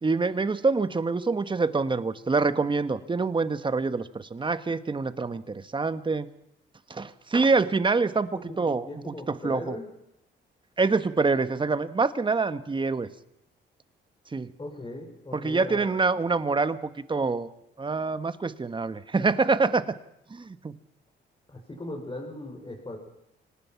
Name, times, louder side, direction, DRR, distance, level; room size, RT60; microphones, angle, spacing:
voice 1, 0.0-6.3 6.9-9.7 10.8-13.1 14.3-14.5 15.3-17.5 17.8-19.8 20.3-20.7, right 4 dB, 25° right, 12 dB, 1.4 m, -26 dB
voice 2, 8.2-8.6 8.9-9.8 14.6-15.9 21.5-23.0, left 2 dB, 25° left, -1 dB, 5.9 m, -39 dB
25.5 x 19.0 x 5.9 m, 0.82 s
cardioid pair, 90°, 20 cm